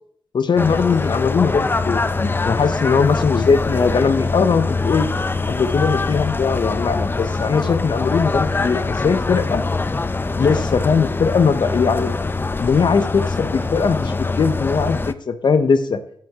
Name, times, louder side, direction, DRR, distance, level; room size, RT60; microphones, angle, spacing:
voice 1, 0.3-5.1 5.5-9.6 10.4-12.1 12.6-16.0, left 5 dB, 60° left, 10 dB, 0.8 m, -19 dB
sound 1, 0.6-15.1, left 3 dB, 25° left, 0.5 m, -23 dB
11.0 x 6.5 x 3.6 m, 0.64 s
cardioid pair, 60°, 9 cm